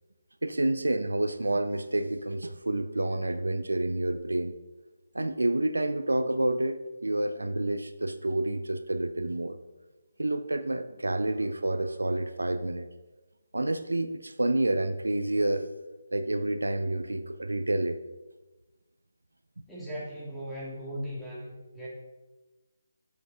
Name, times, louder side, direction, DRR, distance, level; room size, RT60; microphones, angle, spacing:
voice 1, 0.4-4.5 5.1-9.6 10.2-12.9 13.5-15.7 16.1-18.0, right 1 dB, 75° right, 10 dB, 0.6 m, -29 dB
voice 2, 19.7-21.9, equal, 5° left, -8 dB, 2.7 m, -38 dB
7.5 x 7.0 x 5.1 m, 1.2 s
figure-of-eight pair, 150°, 0 cm